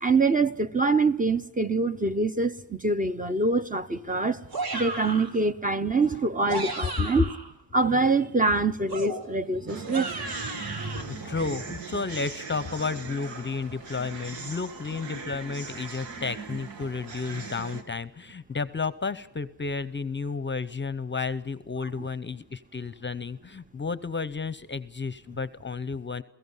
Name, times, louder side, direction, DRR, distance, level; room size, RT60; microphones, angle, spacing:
voice 1, 0.0-7.4 7.7-11.3, right 3 dB, 20° right, 0.7 m, -25 dB
sound 1, 4.5-5.4 6.3-7.5 8.9-11.0, right 3 dB, 55° right, 3.0 m, -34 dB
sound 2, 9.7-17.8, right 4 dB, 85° right, 2.1 m, -40 dB
voice 2, 11.2-26.2, left 4 dB, 25° left, 0.7 m, -32 dB
29.0 x 16.5 x 5.6 m
cardioid pair, 90°, 43 cm